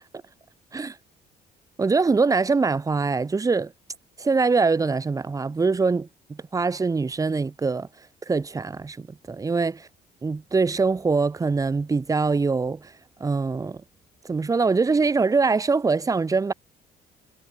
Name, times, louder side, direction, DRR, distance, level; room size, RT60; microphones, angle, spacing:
voice 1, 1.8-3.7 4.2-7.9 8.3-9.8 10.2-12.9 13.2-13.8 14.2-16.5, right 4 dB, 20° right, 1.3 m, -23 dB
cardioid pair, 110°, 17 cm